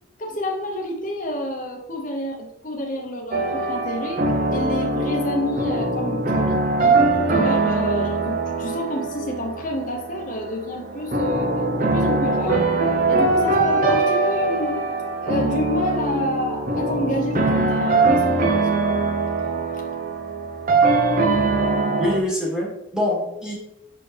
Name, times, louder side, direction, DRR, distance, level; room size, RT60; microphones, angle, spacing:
voice 1, 0.2-4.2 4.5-11.5 11.8-12.7 13.1-14.8 15.2-19.0 19.7-19.8, left 1 dB, 40° left, 0 dB, 0.8 m, -29 dB
sound 1, 3.3-22.2, right 3 dB, 45° right, 0.6 m, -22 dB
voice 2, 22.0-23.5, left 1 dB, 5° right, -5 dB, 1.6 m, -25 dB
6.3 x 4.4 x 3.3 m, 0.85 s
head